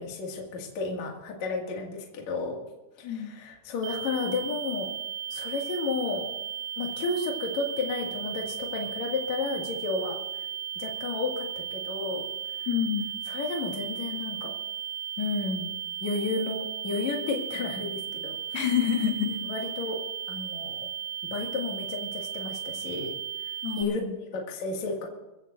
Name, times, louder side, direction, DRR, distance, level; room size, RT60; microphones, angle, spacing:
voice 1, 0.0-2.6 3.0-4.9 5.3-6.3 6.8-10.2 10.7-12.3 13.3-14.6 15.2-15.7 16.0-18.6 19.3-20.9 21.3-23.1 23.8-24.0 24.3-25.1, left 3 dB, 45° left, -1 dB, 2.5 m, -32 dB
sound 1, 3.8-23.8, right 9 dB, 90° right, 3.7 m, -36 dB
voice 2, 12.7-13.1 18.5-19.4 23.6-24.2, left 8 dB, 80° left, 4 dB, 3.7 m, -27 dB
25.5 x 14.5 x 2.6 m, 0.99 s
omnidirectional pair, 5.9 m